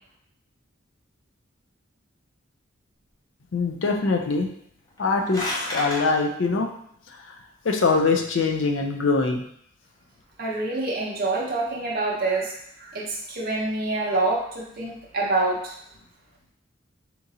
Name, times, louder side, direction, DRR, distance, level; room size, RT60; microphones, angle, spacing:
voice 1, 3.5-4.5 5.0-6.7 7.1-7.3 7.6-9.4, left 4 dB, 65° left, 3 dB, 0.5 m, -23 dB
sound 1, 4.9-6.0, left 1 dB, 20° left, 0.6 m, -30 dB
voice 2, 10.4-15.7, right 2 dB, 45° right, -4 dB, 0.7 m, -26 dB
3.7 x 2.9 x 2.7 m, 0.69 s
head